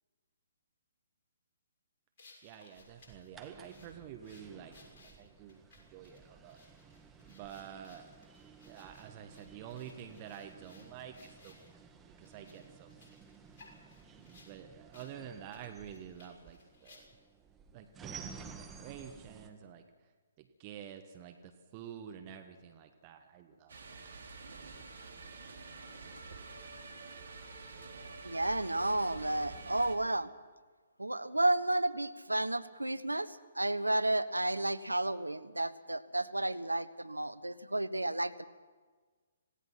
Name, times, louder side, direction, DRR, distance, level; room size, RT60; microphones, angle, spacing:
sound 1, 2.2-11.7 12.2-14.5 14.9-15.1 15.4-17.3, left 3 dB, 45° left, 6.5 m, -62 dB
voice 1, 2.4-6.6 7.3-8.0 8.6-13.2 14.1-17.2 17.7-20.1 20.4-24.1, right 9 dB, 30° right, 6 dB, 1.4 m, -49 dB
sound 2, 2.8-19.5, right 5 dB, 10° right, 1.8 m, -54 dB
sound 3, 23.7-30.0, right 4 dB, 65° right, 3.3 m, -48 dB
voice 2, 27.9-30.3 31.0-38.4, right 1 dB, 90° right, 15 dB, 0.9 m, -32 dB
26.5 x 17.5 x 6.0 m, 1.4 s
figure-of-eight pair, 130°, 0 cm